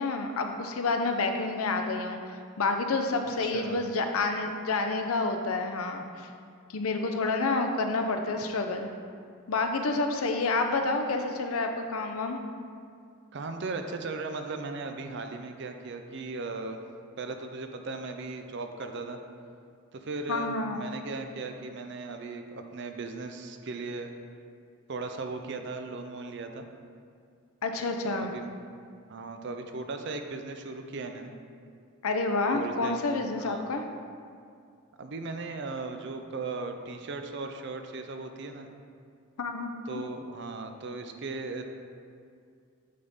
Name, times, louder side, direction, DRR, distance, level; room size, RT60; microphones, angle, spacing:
voice 1, 0.0-6.3 6.7-8.9 9.5-12.4 20.3-20.8 27.6-28.3 32.0-33.8 39.4-40.0, left 3 dB, 75° left, 5 dB, 0.6 m, -29 dB
voice 2, 3.4-3.8 13.3-16.8 17.2-19.2 19.9-24.1 24.9-26.6 28.1-28.5 29.1-31.3 32.5-33.0 33.3-33.6 35.0-38.7 39.9-41.6, right 3 dB, 50° right, 6 dB, 0.5 m, -37 dB
8.4 x 4.0 x 3.6 m, 2.3 s
head